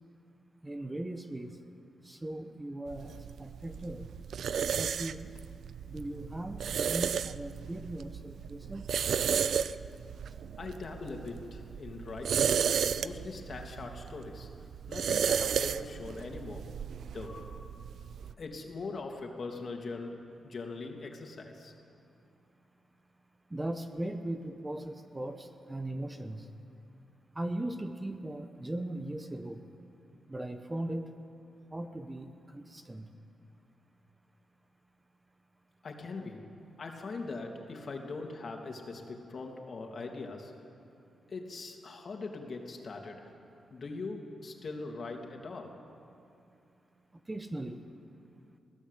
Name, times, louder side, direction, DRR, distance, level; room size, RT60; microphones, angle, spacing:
voice 1, 0.6-1.6 2.0-4.1 4.7-5.3 5.9-8.9 23.5-26.5 27.3-29.6 30.3-31.1 31.7-33.1 47.3-47.8, right 1 dB, 20° right, 7 dB, 1.2 m, -38 dB
sound 1, 2.9-18.3, right 7 dB, 70° right, 0.5 m, -33 dB
voice 2, 10.6-12.5 13.0-14.5 14.9-16.8 17.1-17.8 18.4-21.7 35.8-36.5 36.8-40.6 41.3-43.3 43.7-45.8, left 3 dB, 50° left, 2 dB, 2.9 m, -41 dB
22.0 x 16.5 x 8.4 m, 2.6 s
cardioid pair, 85°, 0 cm